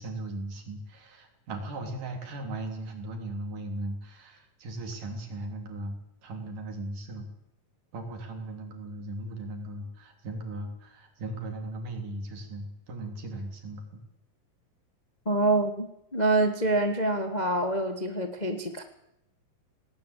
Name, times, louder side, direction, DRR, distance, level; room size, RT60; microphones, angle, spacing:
voice 1, 0.0-7.3 7.9-14.0, right 1 dB, 65° right, 4 dB, 4.9 m, -37 dB
voice 2, 15.2-18.8, right 2 dB, 70° left, 6 dB, 0.4 m, -26 dB
19.0 x 18.0 x 8.4 m, 0.82 s
omnidirectional pair, 3.9 m